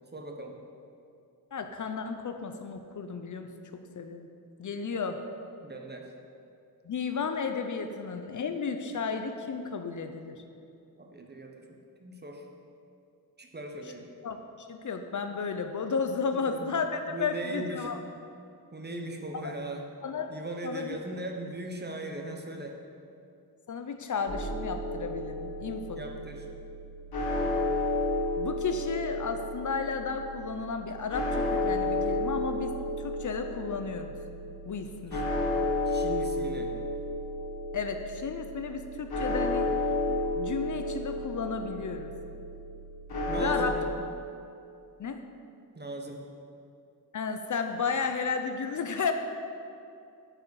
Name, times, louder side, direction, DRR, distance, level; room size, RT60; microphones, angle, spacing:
voice 1, 0.1-0.5 5.6-6.1 11.0-11.6 12.0-12.4 13.4-14.1 16.3-16.7 17.1-17.9 18.7-19.8 20.3-22.8 25.9-26.5 35.1-35.2 35.8-36.7 43.3-43.7 45.8-46.2, right 2 dB, 25° right, 2 dB, 0.7 m, -39 dB
voice 2, 1.5-4.3 4.6-5.2 6.8-10.4 14.2-18.0 19.4-19.5 20.0-20.3 20.6-20.9 23.7-26.0 28.4-34.1 34.6-35.2 37.7-39.7 40.4-42.1 43.4-43.7 45.0-45.2 47.1-49.1, left 5 dB, 55° left, 7 dB, 0.5 m, -33 dB
sound 1, 24.3-43.7, left 2 dB, 80° left, 1.4 m, -32 dB
8.7 x 4.8 x 4.7 m, 2.5 s
wide cardioid pair, 130°, 37 cm